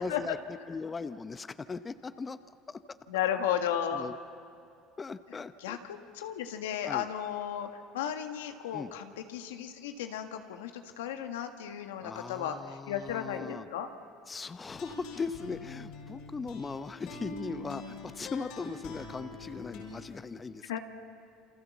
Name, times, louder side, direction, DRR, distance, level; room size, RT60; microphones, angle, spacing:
voice 1, 0.0-2.4 2.7-2.8 3.9-4.2 5.0-5.8 6.8-7.1 8.7-8.9 12.0-13.7 14.3-20.7, left 4 dB, 25° left, 12 dB, 0.8 m, -39 dB
voice 2, 3.1-4.1 5.6-13.9 20.7-20.8, left 9 dB, 90° left, 6 dB, 1.7 m, -34 dB
sound 1, 14.7-20.0, left 2 dB, 70° left, 6.6 m, -44 dB
28.5 x 26.0 x 7.3 m, 2.5 s
hypercardioid pair, 80°, 0 cm